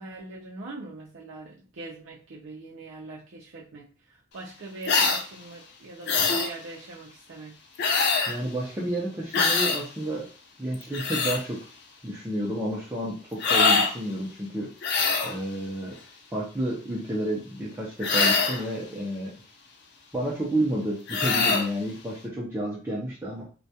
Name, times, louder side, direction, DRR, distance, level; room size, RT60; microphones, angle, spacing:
voice 1, 0.0-7.6, right 2 dB, 65° right, -4 dB, 0.5 m, -42 dB
sound 1, 4.8-5.2 6.1-6.5 7.8-8.4 9.3-9.8 10.7-11.4 13.4-13.9 14.8-15.4 18.0-18.6 21.1-21.7, left 4 dB, 55° left, 0.4 m, -23 dB
voice 2, 8.3-10.3 10.6-11.6 12.0-14.7 15.2-16.0 16.3-19.3 20.1-23.4, right 1 dB, 10° right, -6 dB, 0.5 m, -30 dB
2.2 x 2.2 x 2.7 m, 0.37 s
head